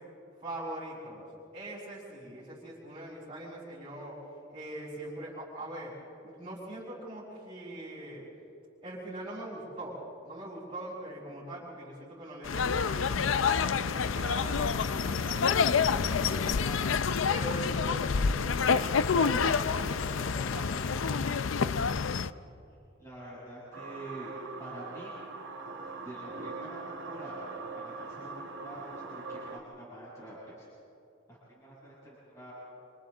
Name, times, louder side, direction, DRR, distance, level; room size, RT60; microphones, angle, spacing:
voice 1, 0.4-1.2 1.5-4.1 4.5-5.9 6.2-8.2 8.8-9.9 10.2-16.9 17.3-21.5, right 1 dB, 25° right, -9 dB, 6.1 m, -42 dB
sound 1, 12.4-22.3, left 5 dB, 75° left, 0.5 m, -28 dB
voice 2, 18.1-18.8 23.0-24.3 24.6-25.1 26.0-30.7 31.3-32.5, right 1 dB, 15° left, -9 dB, 6.9 m, -46 dB
sound 2, 23.7-29.6, right 4 dB, 65° right, 2.4 m, -42 dB
28.0 x 27.0 x 3.9 m, 2.6 s
head